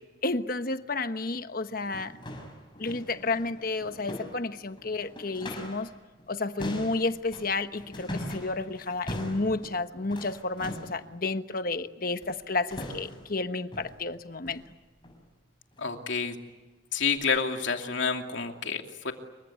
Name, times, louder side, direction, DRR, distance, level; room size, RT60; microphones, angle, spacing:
voice 1, 0.2-2.1 2.8-5.9 6.3-14.6, left 3 dB, 45° left, 10 dB, 1.2 m, -31 dB
sound 1, 1.1-1.2 1.7-5.9 6.2-11.0 12.2-12.4 12.7-13.4 13.7-14.0 14.5-14.7 15.0-15.2 15.7-15.9 16.4-16.5 17.2-17.3, equal, 25° left, 6.3 m, -41 dB
voice 2, 15.8-16.4 16.9-19.1, left 5 dB, 75° left, 4 dB, 2.7 m, -29 dB
27.5 x 24.0 x 8.4 m, 1.3 s
head